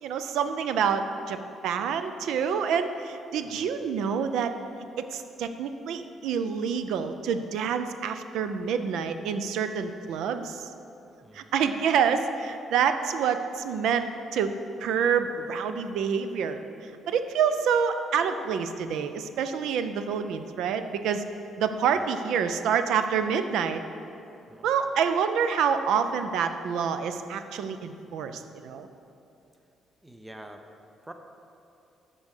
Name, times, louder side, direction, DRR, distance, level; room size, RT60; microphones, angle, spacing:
voice 1, 0.0-4.5 5.0-10.7 11.3-14.5 14.8-16.6 17.1-21.2 21.6-23.8 24.6-28.9, right 7 dB, 85° right, 9 dB, 0.5 m, -27 dB
voice 2, 11.2-11.5 21.9-22.0 24.5-24.7 30.0-30.6 31.1-31.2, right 1 dB, 10° right, 5 dB, 0.5 m, -46 dB
6.9 x 5.4 x 6.5 m, 2.7 s
cardioid pair, 135°, 0 cm